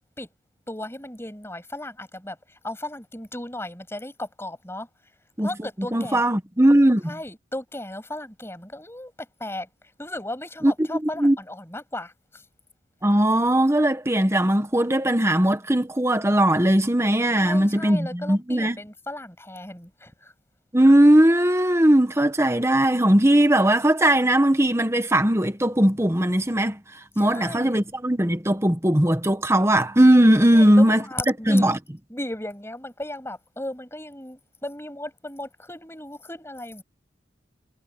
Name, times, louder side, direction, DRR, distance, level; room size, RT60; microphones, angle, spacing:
voice 1, 0.7-4.9 5.4-6.2 7.0-9.7 10.0-12.4 17.3-20.3 27.2-27.7 30.5-31.7 32.1-36.8, left 1 dB, 15° left, 6.9 m, -36 dB
voice 2, 5.9-7.2 10.6-10.7 11.2-11.4 13.0-18.8 20.7-26.8 27.2-31.0 31.5-31.8, right 1 dB, 15° right, 1.4 m, -19 dB
head